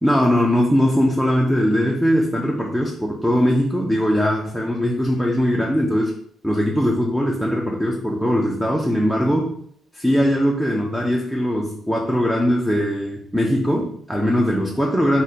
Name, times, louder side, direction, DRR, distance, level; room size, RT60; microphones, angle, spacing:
voice 1, 0.0-6.1 6.4-9.6 9.9-15.2, equal, 5° right, -1 dB, 0.4 m, -20 dB
2.7 x 2.1 x 4.0 m, 0.64 s
cardioid pair, 90°, 0 cm